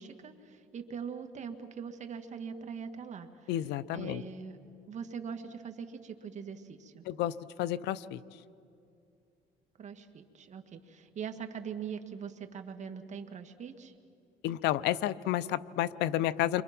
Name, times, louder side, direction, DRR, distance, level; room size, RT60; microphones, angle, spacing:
voice 1, 0.0-3.6 3.9-7.1 9.8-13.9, right 6 dB, 45° right, 6 dB, 1.9 m, -42 dB
voice 2, 3.5-4.2 7.1-8.2 14.4-16.6, left 13 dB, 85° left, 17 dB, 0.7 m, -31 dB
29.5 x 25.5 x 6.0 m, 2.6 s
cardioid pair, 110°, 17 cm